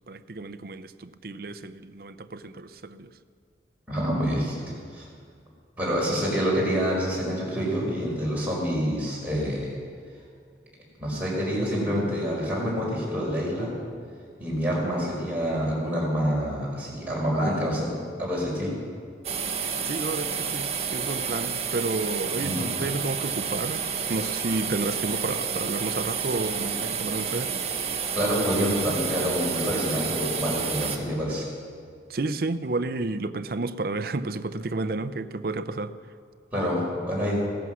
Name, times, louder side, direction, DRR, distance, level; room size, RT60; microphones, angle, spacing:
voice 1, 0.1-3.1 19.8-23.8 24.1-27.5 32.1-35.9, right 3 dB, 55° right, 12 dB, 0.6 m, -31 dB
voice 2, 3.9-5.1 5.8-9.7 11.0-13.7 14.4-17.9 18.2-18.7 22.4-22.6 28.1-31.5 36.5-37.4, equal, 10° right, -6 dB, 5.1 m, -27 dB
sound 1, 19.2-31.0, right 6 dB, 35° right, 1.1 m, -30 dB
16.5 x 14.0 x 6.2 m, 2.2 s
head